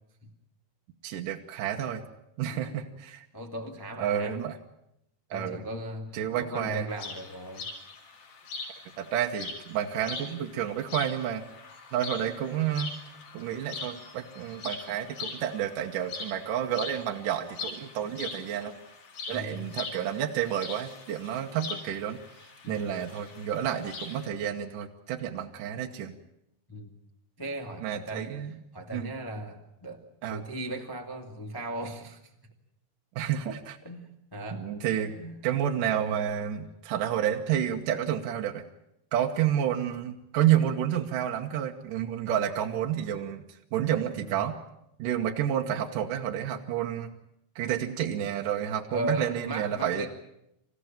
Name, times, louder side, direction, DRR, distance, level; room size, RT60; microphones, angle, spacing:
voice 1, 1.0-2.0 2.4-3.3 4.0-4.6 5.3-5.7 6.1-6.9 9.0-11.4 11.9-12.9 13.3-18.7 19.3-22.2 22.7-26.2 27.8-28.6 28.9-29.1 30.2-30.4 33.2-33.8 34.5-35.1 35.4-38.6 39.1-44.6 45.0-47.1 47.6-50.1, right 10 dB, 65° right, 2 dB, 2.3 m, -30 dB
voice 2, 2.5-2.8 3.3-4.4 5.3-7.7 19.3-19.7 22.6-23.0 26.7-26.9 27.4-28.3 28.7-30.0 30.3-32.2 33.8-34.7 35.1-35.4 44.2-44.4 48.9-50.1, right 1 dB, 30° left, 1 dB, 0.4 m, -37 dB
sound 1, 6.9-24.3, left 4 dB, 60° left, 5.5 m, -42 dB
27.5 x 15.5 x 8.9 m, 0.82 s
omnidirectional pair, 5.0 m